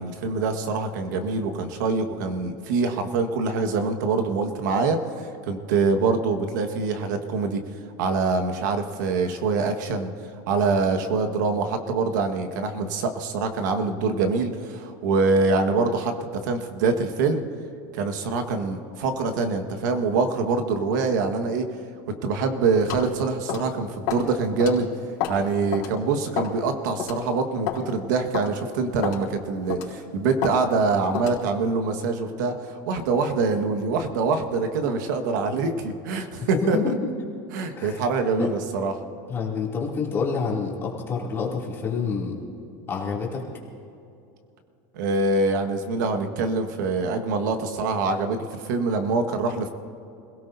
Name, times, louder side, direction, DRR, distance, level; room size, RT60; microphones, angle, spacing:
voice 1, 0.0-5.0 5.5-7.6 8.0-10.1 10.5-16.1 16.4-17.4 17.9-21.7 22.2-24.9 25.3-36.9 37.5-38.9 44.9-49.7, right 4 dB, 80° right, 6 dB, 1.6 m, -24 dB
sound 1, 22.9-23.1 23.5-23.7 24.1-24.3 24.6-24.7 25.2-25.4 25.7-25.9 26.4-26.6 27.0-27.2 27.7-27.8 28.3-28.5 29.0-29.2 29.7-29.9 30.4-30.6 31.1-31.4, left 10 dB, 55° left, 3.8 m, -29 dB
voice 2, 36.4-36.9 37.8-38.0 38.4-38.5 39.3-42.3 42.9-43.4, left 5 dB, 25° left, -3 dB, 2.7 m, -28 dB
27.0 x 17.0 x 2.7 m, 2.7 s
supercardioid pair, 160°, 10 cm